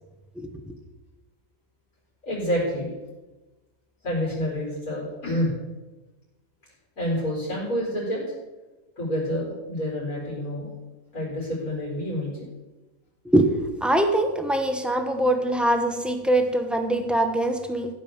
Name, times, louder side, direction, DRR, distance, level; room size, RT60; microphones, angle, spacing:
voice 1, 0.4-0.7 13.2-13.5 13.8-17.9, right 1 dB, ahead, 6 dB, 1.0 m, -23 dB
voice 2, 2.2-2.9 4.0-5.5 7.0-8.3 9.0-10.7 11.1-12.5, equal, 75° left, -6 dB, 4.9 m, -28 dB
15.5 x 5.5 x 7.2 m, 1.1 s
omnidirectional pair, 1.5 m